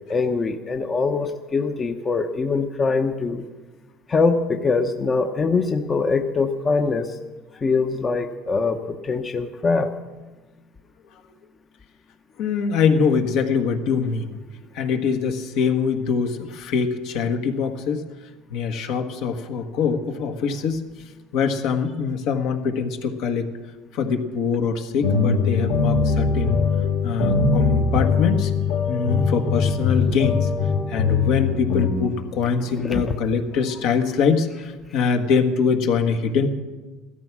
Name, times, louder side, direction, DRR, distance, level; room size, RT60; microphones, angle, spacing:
voice 1, 0.1-3.4 4.1-7.2 7.6-9.9 32.8-33.1, left 4 dB, 25° left, 6 dB, 0.8 m, -23 dB
voice 2, 12.4-14.4 14.7-18.0 18.5-20.8 21.3-23.5 23.9-26.6 27.0-28.5 28.9-30.5 30.9-36.5, left 6 dB, 65° left, 5 dB, 1.5 m, -23 dB
sound 1, 25.0-31.9, left 5 dB, 90° left, 2.8 m, -21 dB
15.5 x 13.5 x 6.1 m, 1.3 s
supercardioid pair, 125°, 0 cm